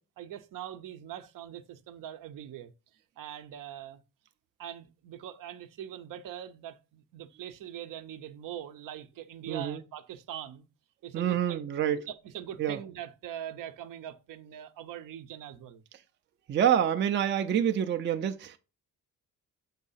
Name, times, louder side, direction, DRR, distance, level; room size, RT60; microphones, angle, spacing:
voice 1, 0.2-2.7 3.2-4.0 4.6-10.7 11.0-11.7 12.1-15.8, right 10 dB, 70° right, 0.7 m, -42 dB
voice 2, 9.5-9.8 11.1-12.1 12.6-12.8 16.5-18.6, right 9 dB, 35° right, 0.4 m, -27 dB
7.3 x 2.7 x 5.6 m
cardioid pair, 155°, 34 cm